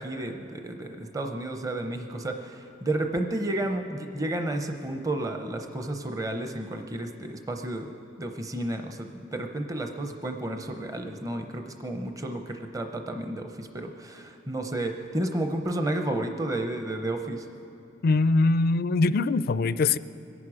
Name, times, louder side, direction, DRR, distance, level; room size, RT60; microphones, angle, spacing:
voice 1, 0.0-7.9 8.2-17.4, right 1 dB, 20° right, 5 dB, 0.7 m, -32 dB
voice 2, 18.0-20.0, left 3 dB, 55° left, 15 dB, 0.4 m, -22 dB
25.0 x 11.0 x 4.9 m, 2.7 s
head